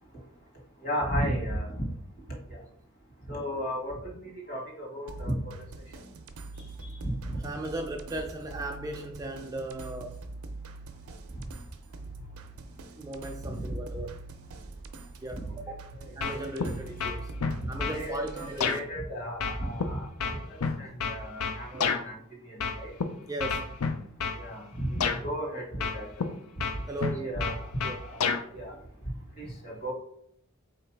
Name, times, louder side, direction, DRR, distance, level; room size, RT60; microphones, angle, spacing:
voice 1, 0.8-1.9 2.5-2.6 3.3-4.1 4.5-5.3 7.0-7.4 13.4-13.6 17.9-20.1 20.5-22.1 22.5-22.9 24.4-26.3 27.1-27.6 28.0-28.7 29.4-29.9, equal, 50° left, -1 dB, 1.5 m, -34 dB
sound 1, 5.1-18.8, right 3 dB, 80° right, 0.5 m, -44 dB
voice 2, 7.4-10.2 13.0-14.1 15.2-15.8 16.2-17.3 17.7-18.7 23.3-23.7 26.9-27.2 27.8-28.0, right 1 dB, 15° right, 3 dB, 0.3 m, -36 dB
sound 2, 16.2-16.7 17.0-18.0 18.6-18.8 19.4-22.0 22.6-23.0 23.4-24.4 25.0-25.2 25.8-26.3 26.6-28.4, left 5 dB, 85° left, 0.5 m, -29 dB
3.9 x 2.9 x 4.5 m, 0.70 s
head